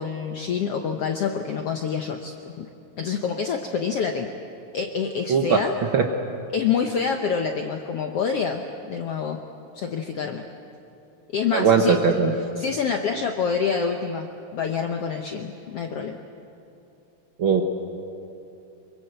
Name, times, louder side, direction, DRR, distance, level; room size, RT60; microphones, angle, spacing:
voice 1, 0.0-2.7 3.0-4.3 4.7-5.7 6.5-9.4 9.7-10.4 11.3-12.0 12.6-16.2, left 6 dB, 70° left, 4 dB, 1.4 m, -27 dB
voice 2, 5.3-5.6 5.9-6.0 11.5-12.3 17.4-17.6, right 6 dB, 75° right, 4 dB, 1.1 m, -19 dB
25.0 x 23.0 x 7.9 m, 2.8 s
omnidirectional pair, 4.0 m